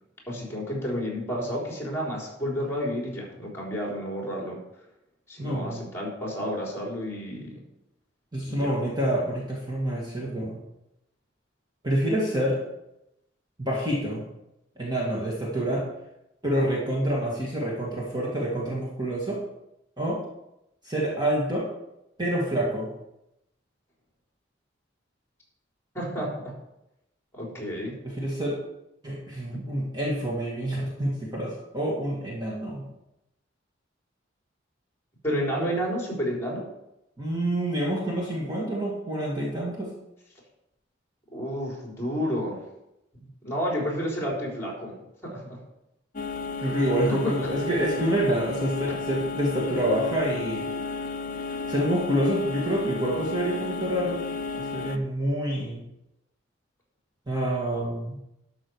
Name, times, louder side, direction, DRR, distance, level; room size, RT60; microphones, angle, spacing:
voice 1, 0.3-4.6 5.3-7.5 8.5-8.8 25.9-26.5 27.3-27.9 29.5-29.6 35.2-36.6 41.3-42.6 43.1-44.9 45.2-45.6 47.1-47.2 47.4-47.5 48.9-49.0, equal, 15° left, -3 dB, 3.9 m, -31 dB
voice 2, 5.4-5.8 8.3-10.6 11.8-12.6 13.6-14.2 14.8-15.8 16.4-19.4 20.0-20.2 20.8-21.7 22.2-22.9 28.0-28.6 29.0-32.9 37.2-39.9 46.6-50.7 51.7-54.2 54.6-55.8 57.3-58.2, right 1 dB, 20° right, -5 dB, 2.0 m, -27 dB
sound 1, 46.2-55.0, left 4 dB, 45° left, 0.6 m, -33 dB
12.0 x 6.4 x 4.7 m, 0.87 s
head